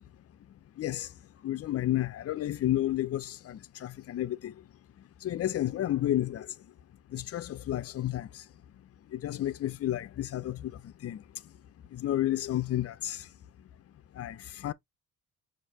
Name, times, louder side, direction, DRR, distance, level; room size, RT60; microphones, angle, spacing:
voice 1, 0.8-4.7 5.2-6.7 7.1-8.5 9.1-11.6 11.9-13.3 14.1-14.7, left 13 dB, 50° left, 0.6 m, -32 dB
6.3 x 2.7 x 2.8 m
cardioid pair, 90°, 30 cm